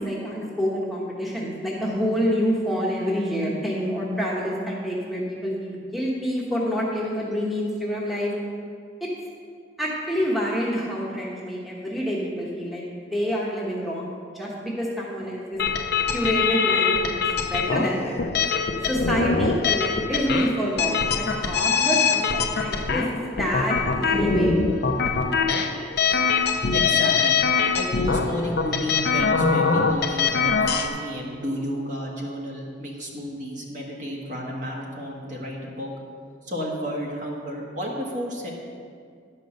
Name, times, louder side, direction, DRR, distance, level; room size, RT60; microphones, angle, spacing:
voice 1, 0.0-8.3 9.0-9.1 9.8-15.6 16.1-18.2 18.8-24.6, equal, ahead, -5 dB, 1.2 m, -27 dB
sound 1, 15.6-30.9, left 5 dB, 60° left, 0.6 m, -23 dB
voice 2, 26.4-27.4 27.7-35.9 36.4-38.5, equal, 40° right, -2 dB, 1.6 m, -32 dB
11.0 x 5.4 x 6.4 m, 2.2 s
head